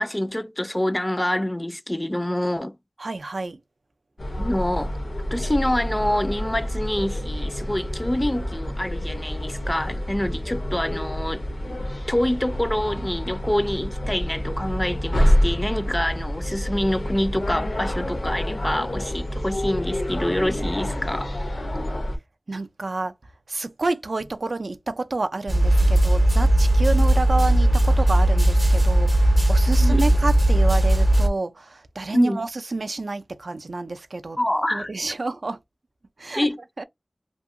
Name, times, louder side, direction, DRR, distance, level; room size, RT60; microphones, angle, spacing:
voice 1, 0.0-2.8 4.4-4.9 5.3-21.3 29.7-30.0 32.1-32.4 34.4-34.9 36.4-36.6, left 1 dB, 20° left, 0.3 m, -26 dB
voice 2, 3.0-3.6 22.5-23.1 23.5-34.4 34.7-35.6 36.2-36.5 36.8-36.9, right 3 dB, 85° right, 0.3 m, -29 dB
sound 1, 4.2-22.2, equal, 75° left, 0.6 m, -27 dB
sound 2, 25.5-31.3, right 1 dB, 45° right, 0.6 m, -18 dB
2.8 x 2.6 x 2.4 m
wide cardioid pair, 60°, 0 cm